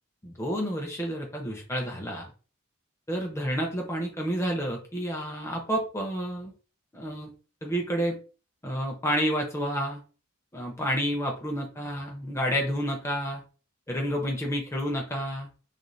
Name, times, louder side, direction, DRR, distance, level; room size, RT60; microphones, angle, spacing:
voice 1, 0.2-2.3 3.1-6.5 6.9-7.3 7.6-8.2 8.6-10.0 10.5-13.4 13.9-15.5, equal, 15° left, 0 dB, 0.6 m, -30 dB
2.5 x 2.0 x 3.0 m, 0.36 s
head